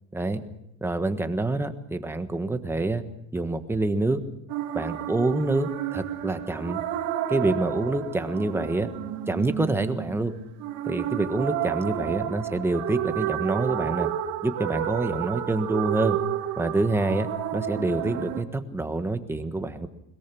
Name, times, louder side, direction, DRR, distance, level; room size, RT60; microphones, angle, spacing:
voice 1, 0.8-3.0 3.3-4.2 4.7-6.8 7.3-8.9 9.3-10.3 10.8-14.1 14.4-16.2 16.6-17.3 17.5-19.9, right 2 dB, 10° right, 8 dB, 1.4 m, -26 dB
sound 1, 4.5-18.4, right 12 dB, 85° right, 2.5 m, -31 dB
21.5 x 21.5 x 6.1 m, 0.80 s
cardioid pair, 145°, 29 cm